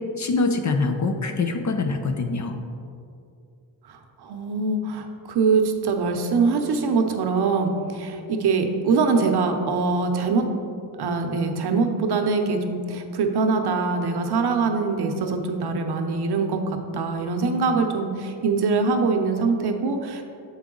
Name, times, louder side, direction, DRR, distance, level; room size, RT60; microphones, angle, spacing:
voice 1, 0.2-2.5, left 3 dB, 35° left, 5 dB, 0.6 m, -24 dB
voice 2, 3.9-10.5 11.0-20.2, right 4 dB, 50° right, 5 dB, 0.8 m, -23 dB
7.0 x 4.7 x 3.8 m, 2.4 s
cardioid pair, 80°, 49 cm